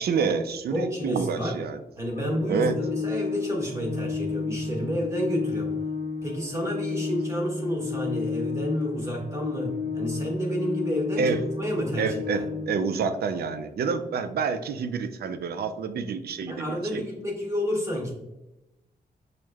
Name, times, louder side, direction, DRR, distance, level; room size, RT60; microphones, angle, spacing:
voice 1, 0.0-1.8 2.5-2.8 11.2-11.4 12.0-17.0, right 5 dB, 85° right, 9 dB, 0.4 m, -28 dB
voice 2, 0.7-1.6 2.0-5.8 6.2-12.5 16.5-18.1, equal, 20° right, -2 dB, 1.2 m, -30 dB
Organ, 2.1-13.1, left 4 dB, 55° left, 0.6 m, -32 dB
6.1 x 2.1 x 2.3 m, 0.95 s
wide cardioid pair, 105°, 16 cm